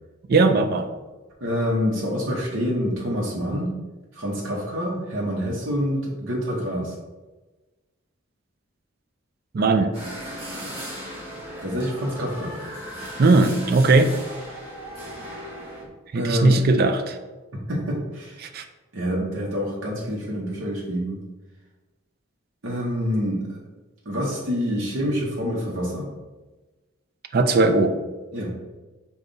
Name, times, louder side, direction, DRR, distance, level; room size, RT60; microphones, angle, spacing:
voice 1, 0.3-0.9 9.5-9.9 13.2-14.1 16.1-17.2 18.4-18.6 27.3-28.0, right 3 dB, 45° right, 7 dB, 0.4 m, -18 dB
voice 2, 1.4-3.8 4.1-6.9 11.6-12.6 16.1-16.6 17.7-18.5 18.9-21.2 22.6-23.4 24.0-26.1 28.3-28.5, equal, 60° right, -4 dB, 0.8 m, -26 dB
sound 1, 9.9-15.8, equal, 30° right, 1.4 m, -37 dB
5.2 x 2.3 x 3.9 m, 1.2 s
head